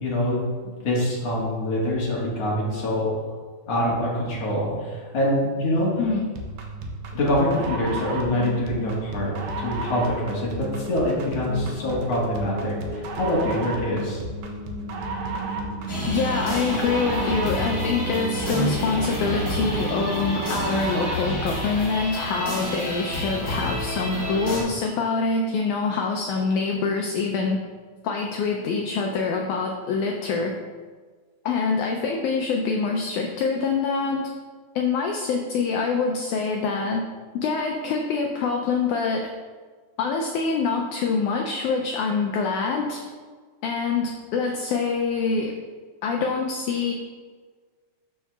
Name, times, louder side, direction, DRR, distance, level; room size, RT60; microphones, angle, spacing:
voice 1, 0.0-3.1 3.7-5.9 7.1-14.2, left 1 dB, 55° left, -6 dB, 2.3 m, -25 dB
sound 1, 6.4-21.3, right 2 dB, 75° right, 1.8 m, -32 dB
sound 2, 15.9-24.6, left 1 dB, 25° left, 2.0 m, -29 dB
voice 2, 16.1-27.6 28.0-30.5 31.4-34.3 34.7-37.0 37.3-39.3 40.0-43.0 43.6-45.5 46.0-46.9, left 4 dB, 85° left, 2 dB, 1.7 m, -25 dB
12.5 x 4.7 x 2.3 m, 1.5 s
omnidirectional pair, 4.1 m